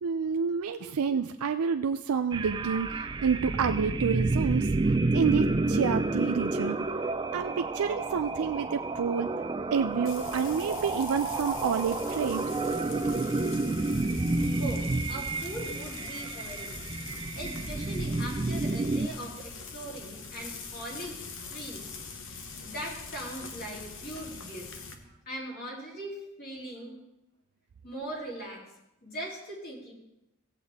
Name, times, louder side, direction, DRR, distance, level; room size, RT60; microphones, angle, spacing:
voice 1, 0.0-6.8 7.3-9.3 9.7-12.5, right 6 dB, 90° right, 7 dB, 0.4 m, -29 dB
sound 1, 2.3-19.1, right 2 dB, 20° right, 0.4 m, -30 dB
Frying (food), 10.0-24.9, left 4 dB, 65° left, 1.1 m, -43 dB
voice 2, 14.5-16.8 17.3-21.2 21.5-21.9 22.6-24.7 25.0-27.0 27.8-28.7 29.0-29.9, right 1 dB, 45° left, -4 dB, 3.4 m, -40 dB
16.5 x 7.9 x 3.6 m, 0.89 s
head